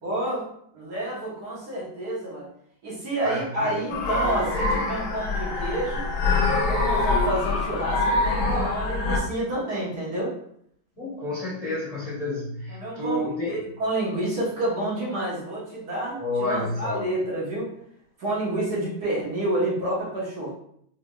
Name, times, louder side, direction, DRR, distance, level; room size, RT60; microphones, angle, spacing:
voice 1, 0.0-0.5 0.7-2.5 2.8-6.1 6.6-10.3 12.7-13.2 13.5-17.7 18.2-20.5, right 1 dB, 55° right, -7 dB, 1.6 m, -29 dB
voice 2, 3.2-4.0 11.0-13.6 16.2-17.1, left 2 dB, 25° left, -8 dB, 0.9 m, -30 dB
sound 1, 3.9-9.2, left 3 dB, 60° left, 0.9 m, -24 dB
4.7 x 2.7 x 2.3 m, 0.70 s
omnidirectional pair, 2.1 m